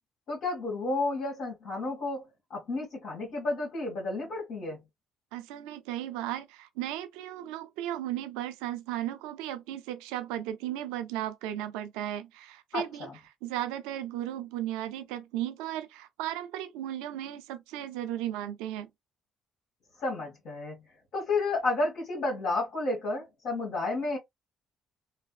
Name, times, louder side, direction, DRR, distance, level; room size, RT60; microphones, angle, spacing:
voice 1, 0.3-4.8 12.7-13.2 20.0-20.7 21.1-24.2, left 2 dB, 65° left, 1.6 m, -31 dB
voice 2, 5.3-13.1 13.4-18.9, right 12 dB, 80° right, 0.4 m, -35 dB
3.3 x 2.0 x 2.3 m
hypercardioid pair, 60°, 0 cm